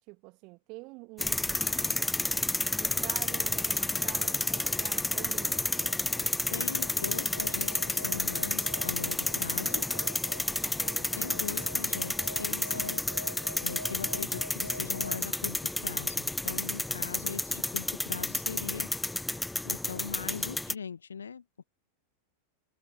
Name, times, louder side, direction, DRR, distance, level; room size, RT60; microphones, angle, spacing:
voice 1, 0.1-2.0 2.8-5.7 10.6-11.2, right 26 dB, 40° right, 2.1 m, -47 dB
sound 1, 1.2-20.7, left 2 dB, 5° left, 0.4 m, -31 dB
sound 2, 1.8-15.2, equal, 90° left, 1.5 m, -46 dB
voice 2, 6.5-9.9 11.1-18.9 19.6-21.6, left 6 dB, 70° left, 1.5 m, -41 dB
figure-of-eight pair, 90°, 0 cm